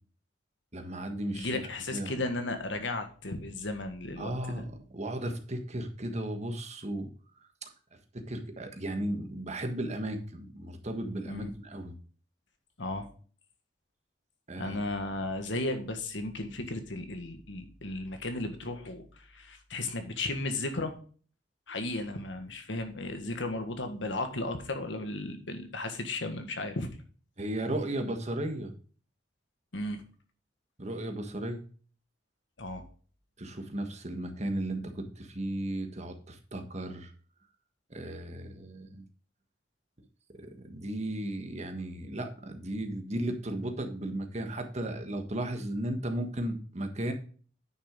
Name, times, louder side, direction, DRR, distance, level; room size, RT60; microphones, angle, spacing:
voice 1, 0.7-1.6 1.9-2.2 4.2-4.7 4.9-7.1 7.6-7.7 8.1-11.9 14.5-14.8 27.4-28.7 30.8-31.6 33.4-37.1 37.9-39.0 40.3-47.1, right 1 dB, 40° right, 5 dB, 1.5 m, -35 dB
voice 2, 1.3-4.6 11.3-11.5 12.8-13.1 14.6-20.9 21.7-26.9 29.7-30.0 32.6-32.8, left 2 dB, 75° left, 6 dB, 1.7 m, -35 dB
9.7 x 6.4 x 3.8 m, 0.42 s
head